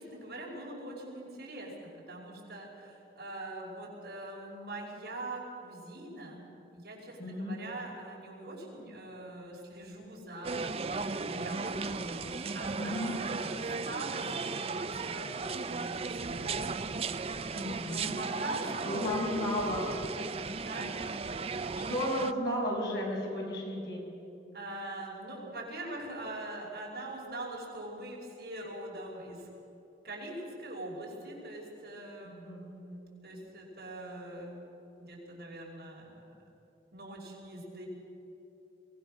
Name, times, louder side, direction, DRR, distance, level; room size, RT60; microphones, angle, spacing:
voice 1, 0.0-6.5 6.7-16.8 17.7-19.2 20.7-21.0 24.5-29.5 30.0-34.6 35.0-36.3 36.9-37.9, right 1 dB, 60° right, -3 dB, 5.3 m, -43 dB
voice 2, 7.2-7.6 12.8-13.2 17.5-18.1 18.8-19.8 21.9-24.1 32.2-32.7, left 1 dB, 65° left, -2 dB, 6.4 m, -33 dB
sound 1, 10.4-22.3, right 4 dB, 35° right, 0.5 m, -36 dB
23.0 x 18.5 x 6.5 m, 2.8 s
head